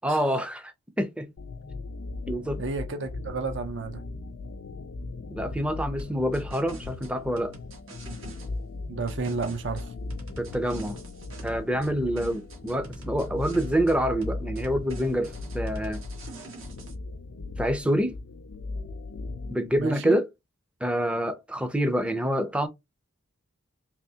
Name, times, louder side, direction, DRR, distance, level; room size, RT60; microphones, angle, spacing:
voice 1, 0.0-0.7 1.0-1.3 2.3-2.6 5.3-7.5 10.4-11.0 11.4-16.0 17.6-18.2 19.5-20.3 20.8-22.7, equal, 5° right, 0.4 m, -27 dB
sound 1, 1.4-19.8, left 2 dB, 70° left, 0.4 m, -38 dB
voice 2, 2.6-4.0 8.9-9.9 19.8-20.2, right 4 dB, 60° right, 0.5 m, -31 dB
sound 2, 6.0-8.5 9.1-11.9 12.2-14.0 14.2-16.9, right 2 dB, 80° right, 1.4 m, -45 dB
3.4 x 3.0 x 2.7 m
head